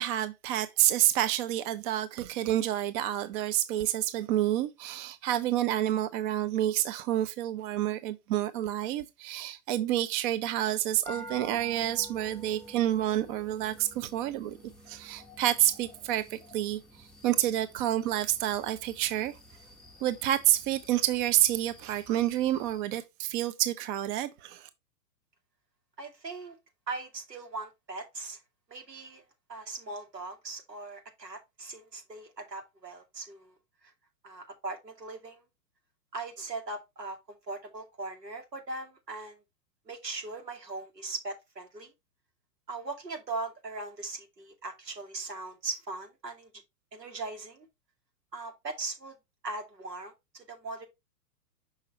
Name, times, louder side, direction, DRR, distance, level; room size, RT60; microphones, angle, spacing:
voice 1, 0.0-14.6 14.9-19.3 20.0-24.7, right 13 dB, 35° right, 0.7 m, -29 dB
sound 1, 11.0-22.8, equal, ahead, 0.7 m, -50 dB
voice 2, 26.0-26.6 26.9-28.4 28.7-29.2 29.5-33.6 33.8-33.9 34.2-35.4 36.1-37.2 37.5-39.4 39.9-41.9 42.7-46.5 46.9-47.7 48.3-49.2 49.4-50.9, right 3 dB, 85° right, 2.5 m, -39 dB
6.1 x 5.6 x 3.2 m
figure-of-eight pair, 110°, 48 cm